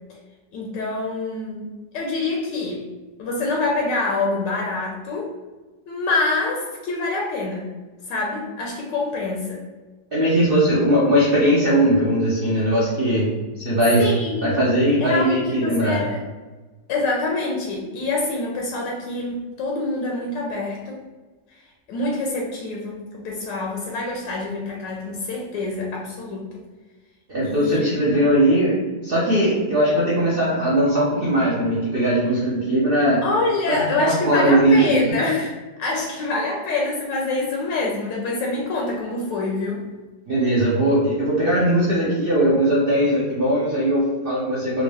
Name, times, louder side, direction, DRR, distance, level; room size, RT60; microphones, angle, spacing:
voice 1, 0.5-1.7 1.9-2.8 3.2-5.3 5.9-7.7 8.1-9.6 14.0-14.7 15.0-16.2 16.9-21.0 21.9-26.5 27.4-28.0 33.2-39.8, left 2 dB, 80° left, -1 dB, 1.2 m, -26 dB
voice 2, 10.1-13.3 13.6-14.1 14.4-16.0 27.3-28.8 29.0-33.2 33.7-34.8 35.1-35.2 40.3-44.8, right 1 dB, 60° right, -7 dB, 0.5 m, -19 dB
3.5 x 2.5 x 3.3 m, 1.3 s
omnidirectional pair, 2.0 m